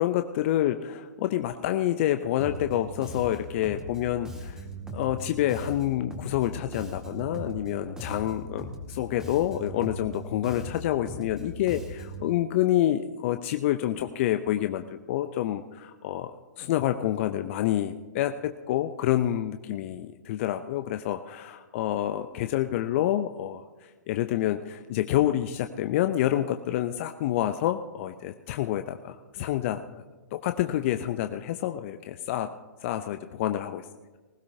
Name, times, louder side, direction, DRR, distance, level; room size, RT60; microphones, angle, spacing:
voice 1, 0.0-4.6 4.9-16.3 16.6-30.0 30.3-32.5 32.8-33.9, left 12 dB, 45° left, 8 dB, 0.6 m, -28 dB
Bass guitar, 2.4-12.3, right 1 dB, 5° right, 2.0 m, -39 dB
20.0 x 16.0 x 2.8 m, 1.3 s
hypercardioid pair, 120°, 9 cm